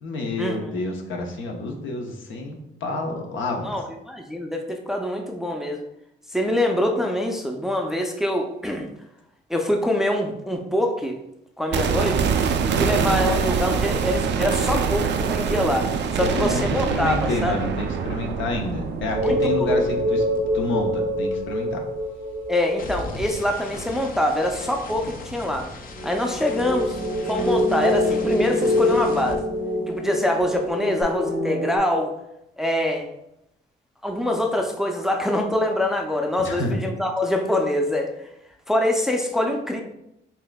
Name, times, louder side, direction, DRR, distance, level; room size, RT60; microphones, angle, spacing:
voice 1, 0.0-3.8 16.2-16.6 16.9-20.2 20.5-21.8 36.4-36.8, left 2 dB, 75° left, 2 dB, 0.8 m, -29 dB
voice 2, 3.6-5.8 6.3-8.9 9.5-11.2 11.6-12.3 12.6-17.5 19.2-19.7 22.5-25.7 26.0-27.0 27.3-29.4 29.9-32.1 32.6-33.1 34.0-38.1 38.7-39.8, left 1 dB, ahead, 2 dB, 0.4 m, -24 dB
sound 1, 11.7-21.7 22.0-22.1, right 6 dB, 60° right, 0.4 m, -25 dB
sound 2, 17.1-18.6 18.8-30.1 30.4-31.0, left 3 dB, 45° left, 0.6 m, -40 dB
sound 3, 19.1-24.2 25.9-31.8, left 1 dB, 80° right, 1.0 m, -25 dB
5.5 x 2.5 x 2.3 m, 0.84 s
cardioid pair, 90°, 20 cm